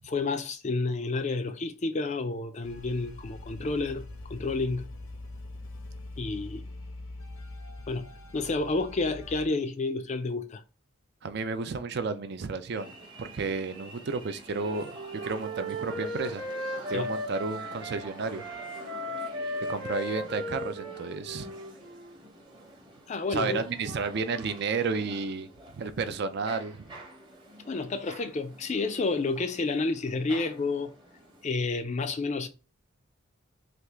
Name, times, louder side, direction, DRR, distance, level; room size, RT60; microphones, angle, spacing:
voice 1, 0.0-4.9 6.2-6.6 7.9-8.1 8.3-10.6 16.9-17.1 23.1-23.6 27.6-30.9 31.4-32.5, left 3 dB, 35° left, 0.4 m, -30 dB
sound 1, 2.6-9.5, left 2 dB, 70° left, 0.7 m, -43 dB
voice 2, 11.2-12.9 13.2-15.0 15.2-16.5 16.9-18.4 19.7-21.5 23.3-25.5 25.7-26.9, right 4 dB, 50° right, 0.4 m, -32 dB
sound 2, 12.7-31.4, right 1 dB, 20° right, 0.8 m, -48 dB
Wind instrument woodwind instrument, 14.5-18.0 18.4-22.1, equal, 70° right, 0.8 m, -36 dB
3.4 x 2.4 x 3.0 m
head